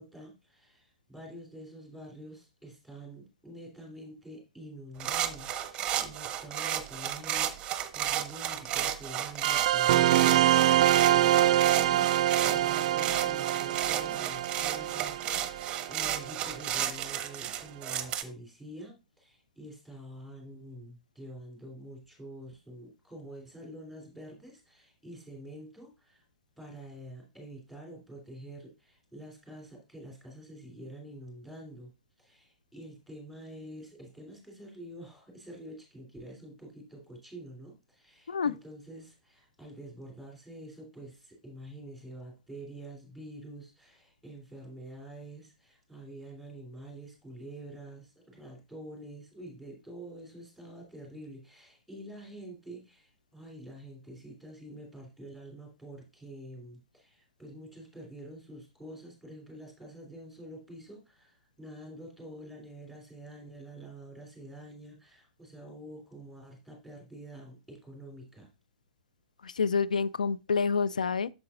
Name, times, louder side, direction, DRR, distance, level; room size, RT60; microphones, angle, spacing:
voice 1, 0.0-12.1 12.4-26.2 26.6-31.9 32.2-68.5, right 1 dB, ahead, 3.2 m, -47 dB
sound 1, 5.0-18.2, right 10 dB, 25° right, 0.8 m, -33 dB
sound 2, 9.4-16.5, right 13 dB, 50° right, 0.3 m, -25 dB
voice 2, 69.4-71.3, left 5 dB, 75° left, 0.3 m, -28 dB
8.3 x 7.1 x 2.5 m
figure-of-eight pair, 115°, 4 cm